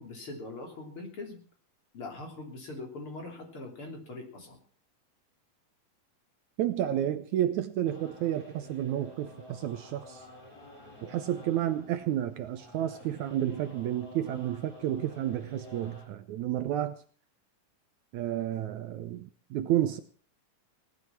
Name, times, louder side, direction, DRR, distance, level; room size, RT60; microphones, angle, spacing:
voice 1, 0.0-1.4 1.9-4.6, left 2 dB, 40° left, 4.1 m, -42 dB
voice 2, 6.6-10.3 11.0-17.0 18.1-20.0, right 12 dB, 70° right, 2.1 m, -31 dB
sound 1, 7.8-16.1, left 1 dB, 15° left, 5.9 m, -50 dB
18.0 x 12.0 x 6.0 m
omnidirectional pair, 3.7 m